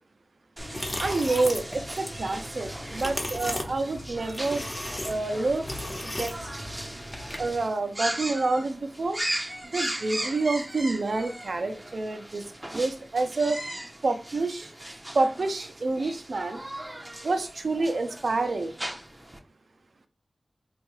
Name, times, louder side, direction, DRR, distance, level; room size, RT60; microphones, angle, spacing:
sound 1, 0.6-7.6, left 1 dB, 35° left, 1.0 m, -36 dB
sound 2, 0.6-19.4, right 1 dB, 25° right, 0.6 m, -38 dB
voice 1, 1.0-4.6 5.0-5.7 6.0-6.3 7.4-9.2 9.7-12.5 12.7-13.6 14.0-14.7 15.1-16.6 17.2-18.7, right 3 dB, 75° right, 8 dB, 0.5 m, -28 dB
3.4 x 2.3 x 3.0 m, 0.33 s
cardioid pair, 40°, 0 cm